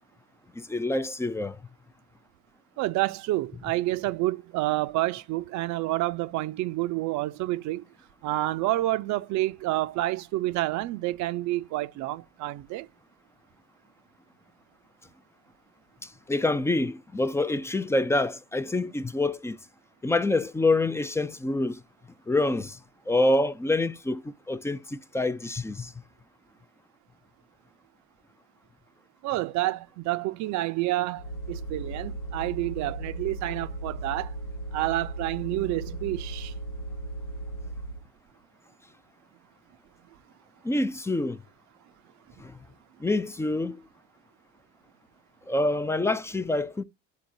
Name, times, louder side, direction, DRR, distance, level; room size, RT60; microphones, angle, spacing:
voice 1, 0.5-1.6 16.0-19.6 20.0-21.8 22.3-22.8 23.1-25.9 40.6-41.4 42.4-42.5 43.0-43.8 45.5-46.8, left 2 dB, 10° left, 0.4 m, -26 dB
voice 2, 2.8-7.8 8.2-12.9 29.2-34.3 34.7-36.5, right 17 dB, 55° right, 0.6 m, -29 dB
sound 1, 31.2-38.1, right 2 dB, 70° left, 0.7 m, -36 dB
11.5 x 3.9 x 2.6 m
hypercardioid pair, 80°, 36 cm